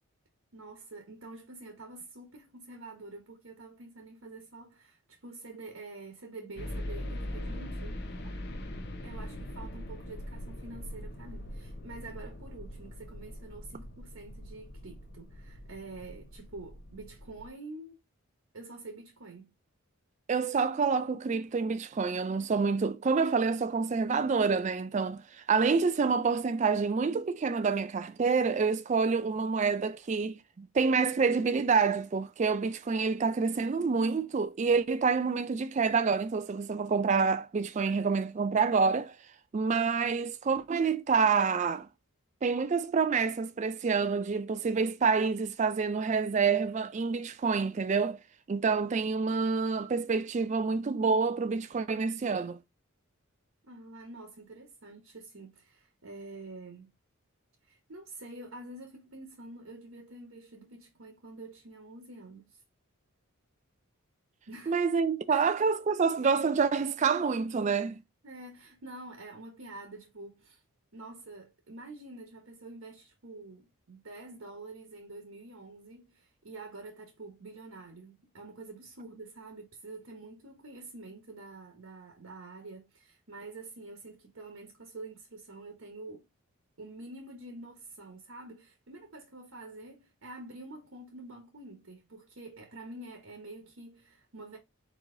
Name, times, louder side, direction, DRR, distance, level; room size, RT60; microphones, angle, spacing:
voice 1, 0.5-8.0 9.0-18.0 18.5-19.5 53.6-56.9 57.7-62.6 64.5-64.8 65.3-65.5 68.2-70.6 70.9-86.2 86.8-94.6, right 2 dB, 70° right, 1.2 m, -47 dB
sound 1, 6.5-17.5, left 1 dB, 50° left, 0.7 m, -41 dB
voice 2, 20.3-39.2 39.5-41.9 42.4-48.2 48.5-52.6 64.7-68.0, right 5 dB, 30° right, 0.3 m, -27 dB
4.5 x 2.9 x 3.7 m
head